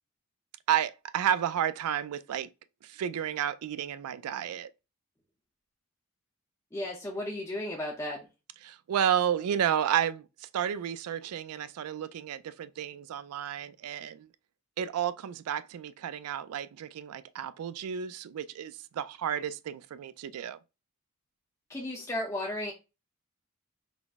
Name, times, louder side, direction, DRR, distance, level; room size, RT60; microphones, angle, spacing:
voice 1, 0.7-2.5 2.8-4.7 8.6-14.3 14.8-20.6, right 9 dB, 85° right, 0.3 m, -31 dB
voice 2, 6.7-8.2 21.7-22.7, left 1 dB, 15° left, 0.6 m, -34 dB
4.1 x 2.0 x 3.4 m
head